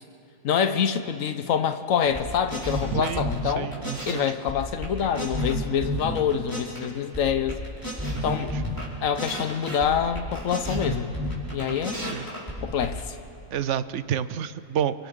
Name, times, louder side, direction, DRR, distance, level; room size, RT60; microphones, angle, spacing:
voice 1, 0.4-3.7 4.1-7.6 8.2-8.5 9.0-11.1 11.5-12.0 12.6-13.2, left 8 dB, 85° left, 9 dB, 1.2 m, -26 dB
sound 1, 2.1-4.2 4.5-6.8 7.1-8.8 9.1-13.0, equal, 15° left, 4.9 m, -31 dB
voice 2, 2.9-3.3 3.6-4.3 8.3-8.5 11.6-12.3 13.5-15.1, right 9 dB, 70° right, 14 dB, 0.9 m, -30 dB
29.5 x 23.5 x 3.8 m, 2.5 s
omnidirectional pair, 1.4 m